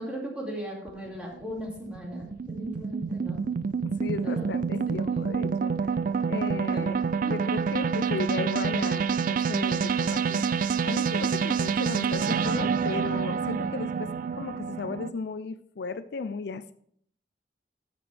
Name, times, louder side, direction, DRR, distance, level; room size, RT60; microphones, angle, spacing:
voice 1, 0.0-3.4 4.2-4.5 6.7-6.9 7.2-7.4, equal, 5° right, -3 dB, 2.5 m, -37 dB
sound 1, 0.9-15.1, right 6 dB, 50° right, 0.4 m, -28 dB
voice 2, 3.8-5.9 6.3-10.4 10.8-16.7, left 4 dB, 65° left, 12 dB, 0.4 m, -35 dB
12.5 x 6.0 x 3.4 m, 0.64 s
head